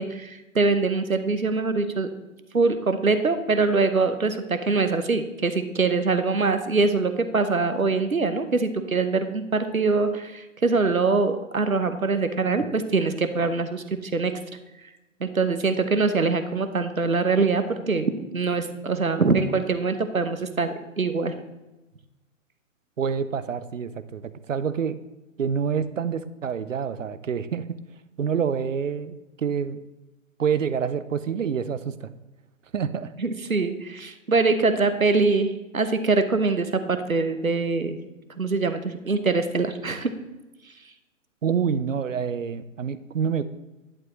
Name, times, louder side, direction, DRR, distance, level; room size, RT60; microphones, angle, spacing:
voice 1, 0.0-2.1 2.5-14.4 15.2-21.4 33.2-38.0 38.4-40.1, right 4 dB, 85° right, 9 dB, 1.1 m, -23 dB
voice 2, 23.0-25.0 25.4-27.8 28.2-29.8 30.4-32.1 32.7-33.1 41.4-43.4, right 7 dB, 70° right, 14 dB, 0.7 m, -27 dB
11.0 x 7.6 x 3.2 m, 1.1 s
figure-of-eight pair, 120°, 40 cm